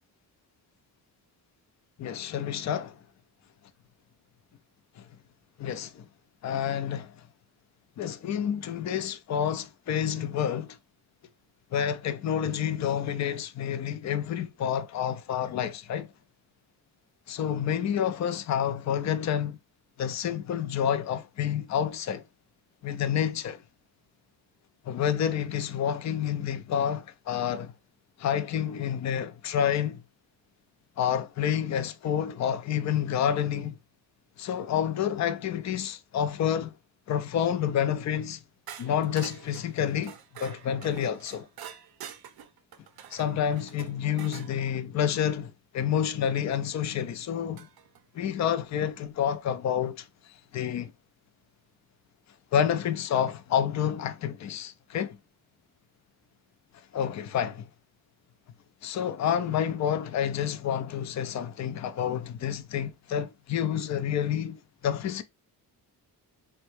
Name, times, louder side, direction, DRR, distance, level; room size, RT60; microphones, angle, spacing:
voice 1, 2.0-2.9 5.6-6.0 6.4-7.1 8.0-10.8 11.7-16.1 17.3-19.6 20.0-22.2 22.8-23.6 24.9-27.7 28.2-30.0 31.0-33.8 34.4-36.7 37.1-38.4 38.8-41.5 43.1-47.7 48.1-50.1 50.5-50.9 52.5-55.2 56.9-57.7 58.8-65.2, left 9 dB, 45° left, 0.4 m, -29 dB
sound 1, 38.7-44.5 46.5-46.6 47.6-48.0, right 9 dB, 65° right, 0.5 m, -46 dB
3.5 x 2.2 x 3.0 m
cardioid pair, 130°, 40 cm